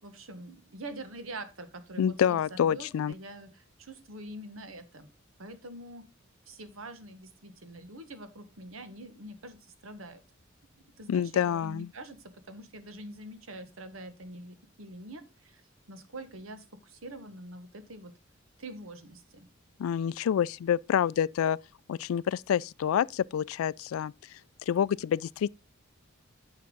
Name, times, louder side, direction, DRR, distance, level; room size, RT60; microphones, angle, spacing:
voice 1, 0.0-5.1 5.4-6.0 6.5-10.2 11.0-12.2 12.5-15.6 15.9-18.1 18.6-19.5, right 1 dB, 80° right, 1.3 m, -45 dB
voice 2, 2.0-3.1 11.1-11.9 19.8-21.6 21.9-24.1 24.7-25.5, left 8 dB, 90° left, 0.3 m, -27 dB
9.5 x 5.7 x 3.8 m
head